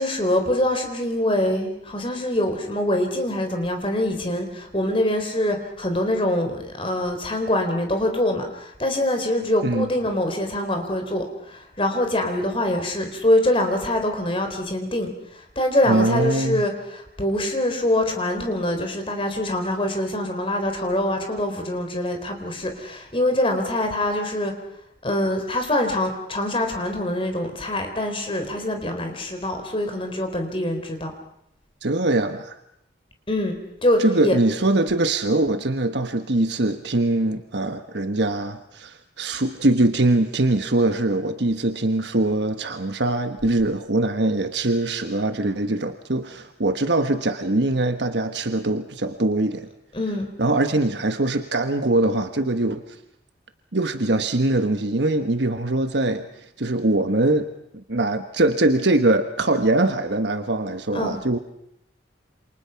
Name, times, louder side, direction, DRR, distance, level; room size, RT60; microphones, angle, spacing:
voice 1, 0.0-24.5 25.0-31.1 33.3-33.5 33.8-34.4 49.9-50.3 60.9-61.2, left 1 dB, 30° left, 5 dB, 4.0 m, -24 dB
voice 2, 15.9-16.6 31.8-32.5 34.0-49.7 50.4-53.0 53.7-57.5 57.7-61.4, right 2 dB, 65° right, 7 dB, 1.3 m, -22 dB
28.5 x 27.0 x 5.9 m, 0.78 s
head